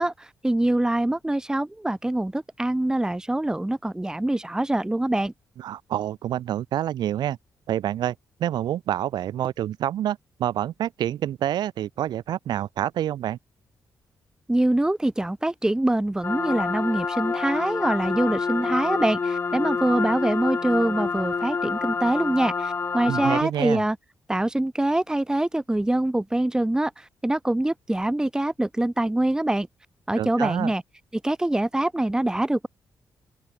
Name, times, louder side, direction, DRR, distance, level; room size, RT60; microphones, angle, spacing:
voice 1, 0.0-5.3 14.5-24.0 24.3-29.7 30.1-30.8 31.1-32.7, right 1 dB, 10° right, 1.5 m, -24 dB
voice 2, 5.6-7.4 7.7-8.1 8.4-13.4 23.0-23.9 30.1-30.7, right 11 dB, 85° right, 1.3 m, -27 dB
sound 1, 16.2-23.4, left 5 dB, 30° left, 0.5 m, -27 dB
open air
cardioid pair, 95°, 7 cm